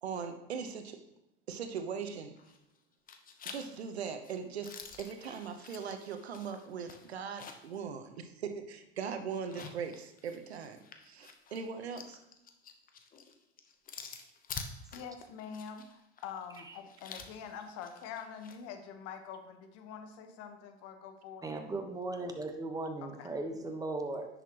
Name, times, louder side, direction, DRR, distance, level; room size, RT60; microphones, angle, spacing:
voice 1, 0.0-1.0 1.5-2.3 3.4-12.2, right 6 dB, 85° right, 7 dB, 1.0 m, -40 dB
sound 1, 2.4-2.8 3.1-7.8 8.2-8.3 9.3-18.6, left 6 dB, 25° left, 0.9 m, -49 dB
voice 2, 14.9-21.5 23.2-23.3, left 7 dB, 50° left, 7 dB, 1.2 m, -45 dB
voice 3, 21.4-24.3, right 2 dB, 10° right, 5 dB, 1.2 m, -37 dB
10.0 x 6.7 x 3.0 m, 0.86 s
hypercardioid pair, 95°, 31 cm